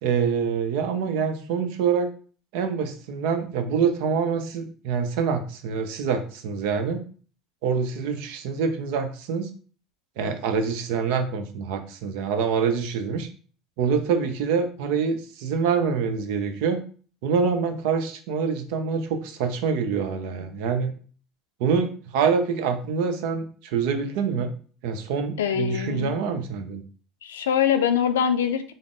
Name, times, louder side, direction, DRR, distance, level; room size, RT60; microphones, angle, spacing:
voice 1, 0.0-2.1 2.5-7.0 7.6-9.5 10.2-13.3 13.8-16.8 17.2-20.9 21.6-24.5 24.8-26.8, right 6 dB, 70° right, 7 dB, 0.6 m, -25 dB
voice 2, 25.4-26.2 27.2-28.7, left 8 dB, 90° left, 9 dB, 0.4 m, -23 dB
3.6 x 2.0 x 3.6 m, 0.41 s
hypercardioid pair, 85°, 0 cm